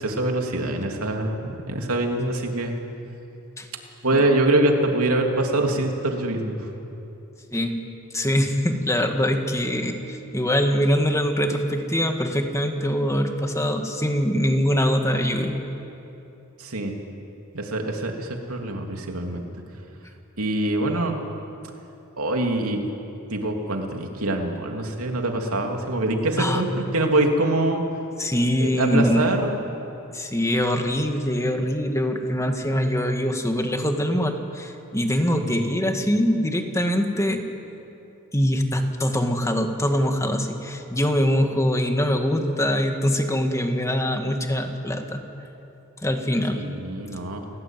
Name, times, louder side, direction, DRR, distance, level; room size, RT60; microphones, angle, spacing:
voice 1, 0.0-2.7 4.0-6.7 16.6-16.9 17.5-19.4 20.4-21.2 22.2-22.8 23.3-26.7 26.9-27.8 28.6-29.6 35.3-35.5 46.5-47.4, right 2 dB, 80° right, 2 dB, 3.2 m, -24 dB
voice 2, 8.1-15.6 26.4-26.6 28.2-29.2 30.1-37.4 38.3-45.2 46.0-46.6, equal, 15° left, 5 dB, 2.0 m, -23 dB
29.0 x 18.0 x 9.3 m, 2.9 s
head